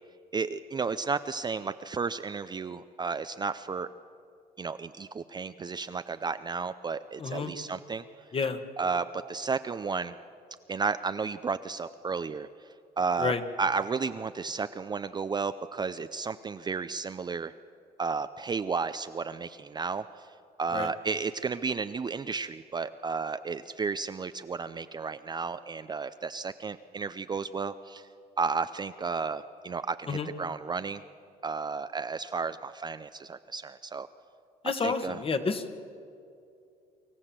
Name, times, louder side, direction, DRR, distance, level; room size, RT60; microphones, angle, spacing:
voice 1, 0.3-3.9 4.6-8.0 8.8-10.1 10.7-12.5 13.0-13.3 13.6-17.5 18.0-20.0 20.6-28.1 28.4-31.0 31.4-34.1 34.8-35.2, right 5 dB, 25° right, 11 dB, 0.5 m, -32 dB
voice 2, 7.2-7.5 8.3-8.6 13.2-13.4 20.7-20.9 30.1-30.3 34.6-35.6, left 5 dB, 35° left, 9 dB, 1.4 m, -29 dB
25.0 x 14.5 x 7.5 m, 2.4 s
cardioid pair, 110°, 17 cm